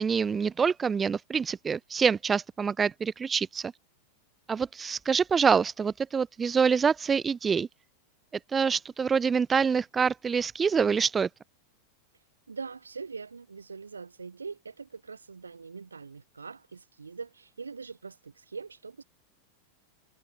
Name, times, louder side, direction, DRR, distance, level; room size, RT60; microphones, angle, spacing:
voice 1, 0.0-3.7 4.5-7.7 8.5-11.3, right 6 dB, 20° right, 0.5 m, -26 dB
voice 2, 12.5-19.0, right 5 dB, 75° right, 1.3 m, -42 dB
figure-of-eight pair, 90°, 0 cm